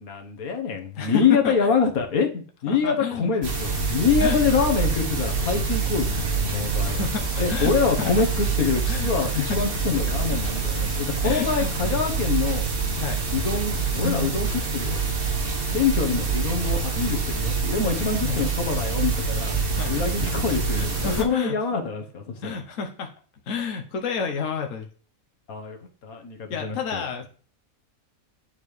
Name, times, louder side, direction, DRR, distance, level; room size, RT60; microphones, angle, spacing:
voice 1, 0.0-7.0 7.4-12.7 13.3-15.0 15.7-19.6 19.8-22.6 25.5-25.8 26.0-27.0, left 5 dB, 85° left, 3 dB, 1.7 m, -25 dB
voice 2, 1.0-1.7 2.7-3.3 4.2-4.7 6.1-6.2 6.7-8.1 8.9-9.4 10.5-10.6 11.2-11.9 12.9-13.2 16.2-16.3 18.2-18.4 19.8-20.0 20.7-21.6 22.4-23.1 23.5-24.9 26.5-27.3, left 6 dB, 70° left, 3 dB, 1.3 m, -31 dB
sound 1, 3.4-21.2, right 4 dB, 45° right, 1.4 m, -26 dB
8.8 x 7.2 x 3.3 m, 0.42 s
omnidirectional pair, 1.5 m